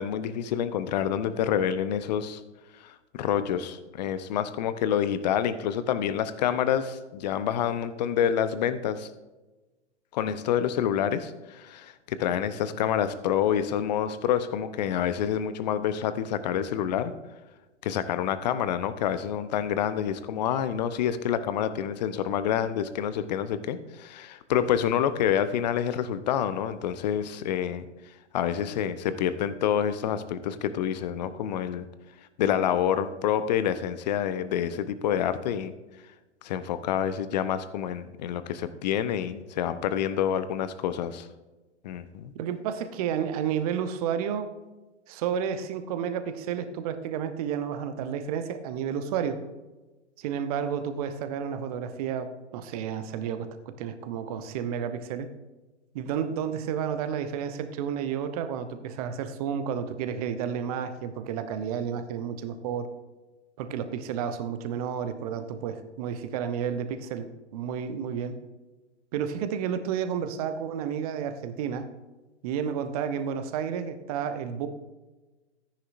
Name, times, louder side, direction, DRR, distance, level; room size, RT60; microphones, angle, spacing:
voice 1, 0.0-2.4 2.8-9.1 10.1-17.1 17.8-27.8 28.3-31.9 32.4-35.7 36.4-41.3 41.8-42.3, left 9 dB, 35° left, 13 dB, 0.8 m, -27 dB
voice 2, 42.4-44.5 45.1-49.4 50.2-53.5 53.8-55.3 55.9-62.9 63.6-68.4 69.1-71.9 72.4-74.7, right 8 dB, 30° right, 10 dB, 0.9 m, -31 dB
14.0 x 10.0 x 2.6 m, 1.2 s
figure-of-eight pair, 115°, 36 cm